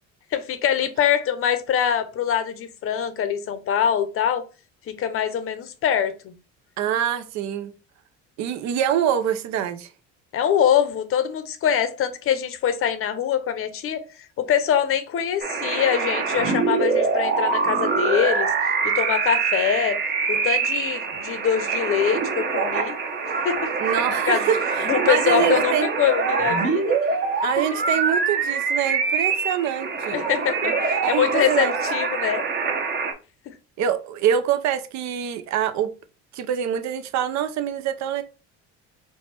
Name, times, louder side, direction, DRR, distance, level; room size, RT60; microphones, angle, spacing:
voice 1, 0.3-4.4 4.9-6.3 10.3-14.0 14.4-18.5 18.8-20.0 20.3-22.9 23.3-23.7 24.3-24.5 24.9-27.0 30.1-32.4 33.5-33.6, left 8 dB, 45° left, 0.7 m, -24 dB
voice 2, 6.8-7.7 8.4-9.9 23.8-25.9 27.4-30.2 31.0-31.7 33.8-35.9 36.3-38.2, right 9 dB, 65° right, 0.7 m, -25 dB
sound 1, 15.4-33.1, right 4 dB, 35° right, 0.9 m, -24 dB
4.6 x 2.2 x 4.2 m
cardioid pair, 115°, 30 cm